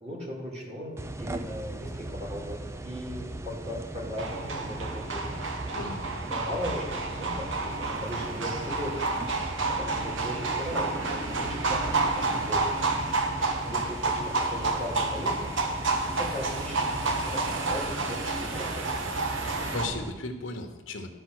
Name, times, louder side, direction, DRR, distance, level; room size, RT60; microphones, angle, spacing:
voice 1, 0.0-5.4 6.3-9.2 9.5-12.8 13.6-18.9, equal, 30° right, -3 dB, 2.4 m, -38 dB
sound 1, 1.0-20.1, right 2 dB, 15° right, 0.3 m, -39 dB
sound 2, 4.2-19.9, right 3 dB, 70° right, 1.0 m, -30 dB
voice 2, 5.7-6.0 19.4-21.1, left 2 dB, 75° left, 6 dB, 1.0 m, -36 dB
12.0 x 5.5 x 6.4 m, 1.2 s
head